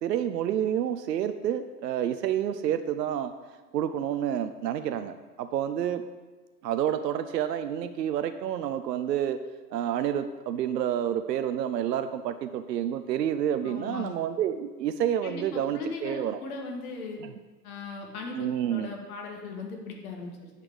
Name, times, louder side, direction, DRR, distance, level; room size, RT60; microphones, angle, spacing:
voice 1, 0.0-3.3 3.7-6.0 6.6-9.4 9.7-16.4 17.2-17.3 18.3-18.9, right 10 dB, 80° right, 10 dB, 0.6 m, -29 dB
voice 2, 13.6-14.1 15.2-17.2 17.6-20.5, left 3 dB, 60° left, 2 dB, 1.7 m, -38 dB
8.1 x 5.9 x 4.9 m, 1.3 s
figure-of-eight pair, 90°, 49 cm